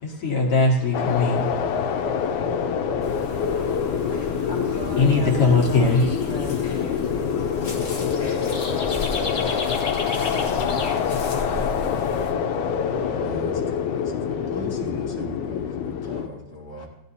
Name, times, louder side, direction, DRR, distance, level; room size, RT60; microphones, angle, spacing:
voice 1, 0.0-4.5 5.0-6.1 9.2-9.5 12.6-13.4 14.3-14.6 16.1-16.2, left 3 dB, 55° left, -2 dB, 2.2 m, -24 dB
sound 1, 0.9-16.3, left 7 dB, 90° left, 2.1 m, -26 dB
sound 2, 3.0-12.3, left 3 dB, 40° left, 1.0 m, -33 dB
voice 2, 4.5-9.5 10.1-12.1, left 1 dB, ahead, -4 dB, 2.0 m, -38 dB
voice 3, 13.2-16.9, right 1 dB, 20° right, -5 dB, 0.4 m, -38 dB
16.5 x 11.0 x 2.8 m, 0.97 s
omnidirectional pair, 3.4 m